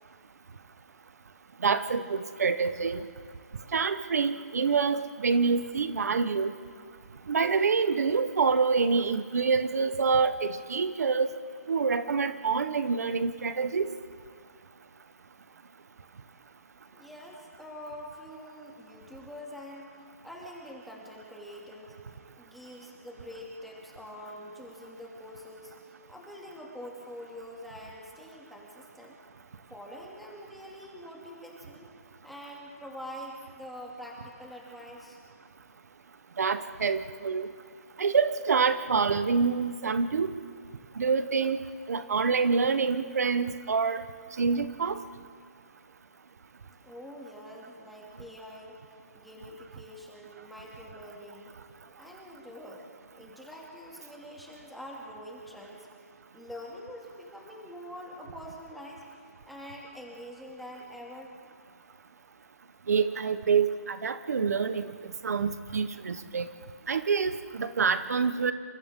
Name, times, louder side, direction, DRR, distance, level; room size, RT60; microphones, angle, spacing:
voice 1, 1.6-3.0 3.7-6.5 7.3-11.3 11.7-13.9 36.4-37.5 38.0-40.3 41.0-41.6 41.9-44.0 44.4-45.0 62.9-64.9 65.2-66.5 66.9-68.5, right 5 dB, 75° right, 11 dB, 1.1 m, -26 dB
voice 2, 16.9-19.9 20.2-22.0 22.4-29.2 29.7-31.9 32.2-35.2 46.8-48.8 49.1-51.5 52.0-55.9 56.3-59.0 59.5-61.3, equal, ahead, -3 dB, 2.5 m, -45 dB
28.5 x 26.5 x 3.8 m, 2.3 s
hypercardioid pair, 170°, 9 cm